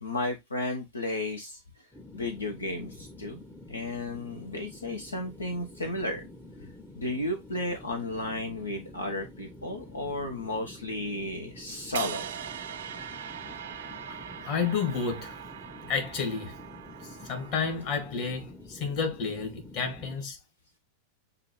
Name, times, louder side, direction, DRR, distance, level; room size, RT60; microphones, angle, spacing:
voice 1, 0.0-1.6 2.1-3.4 3.7-6.2 7.0-12.3, left 2 dB, 80° left, 0.7 m, -33 dB
sound 1, 1.9-20.2, left 1 dB, 5° left, 0.7 m, -48 dB
sound 2, 11.9-18.1, right 9 dB, 60° right, 0.4 m, -41 dB
voice 2, 14.4-15.4 15.9-16.5 17.0-20.4, left 5 dB, 40° left, 1.6 m, -31 dB
6.7 x 2.5 x 3.0 m
figure-of-eight pair, 90°, 0 cm